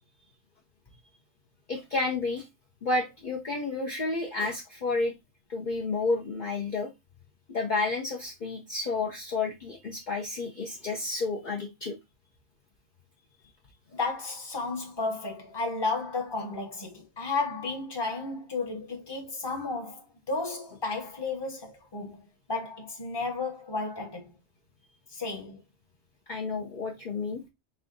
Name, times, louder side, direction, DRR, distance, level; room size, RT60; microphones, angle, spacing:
voice 1, 1.7-2.4 2.8-5.1 5.5-6.9 7.5-12.0 26.3-27.4, left 3 dB, 45° left, 0.8 m, -31 dB
voice 2, 13.9-22.2 22.5-24.3 25.1-25.6, left 3 dB, 25° left, 1.0 m, -33 dB
4.5 x 2.4 x 3.8 m
omnidirectional pair, 1.2 m